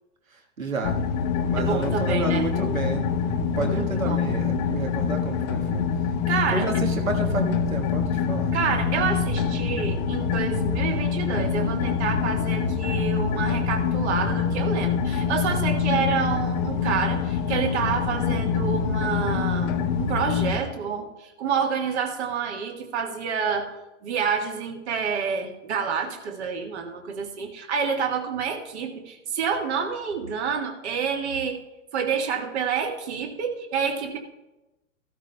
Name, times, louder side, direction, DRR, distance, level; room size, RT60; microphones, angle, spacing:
voice 1, 0.6-1.0 1.5-3.1 3.4-5.9 6.5-8.5, right 3 dB, 80° right, 3 dB, 1.6 m, -30 dB
sound 1, 0.8-20.6, left 6 dB, 35° left, 0.6 m, -25 dB
voice 2, 1.6-2.4 3.5-4.2 6.3-6.7 8.5-19.7 20.0-23.7 24.0-31.6 31.9-34.2, right 6 dB, 55° right, 3 dB, 1.6 m, -28 dB
14.5 x 12.5 x 2.3 m, 1.0 s
figure-of-eight pair, 110°, 40 cm